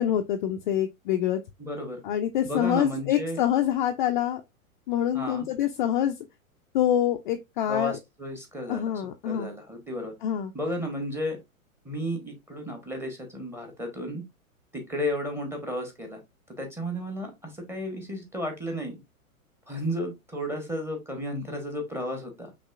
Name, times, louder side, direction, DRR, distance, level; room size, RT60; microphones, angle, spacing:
voice 1, 0.0-1.4 2.0-4.4 4.9-6.2 6.7-8.0 8.7-9.5 10.2-10.5, left 11 dB, 35° left, 0.4 m, -26 dB
voice 2, 1.6-2.0 2.4-3.4 5.1-5.5 7.7-8.9 9.2-10.1 10.5-11.4 11.8-14.2 14.7-16.2 16.6-19.0 19.7-22.5, equal, 5° right, 1.0 m, -33 dB
5.2 x 3.0 x 2.4 m
figure-of-eight pair, 105°, 43 cm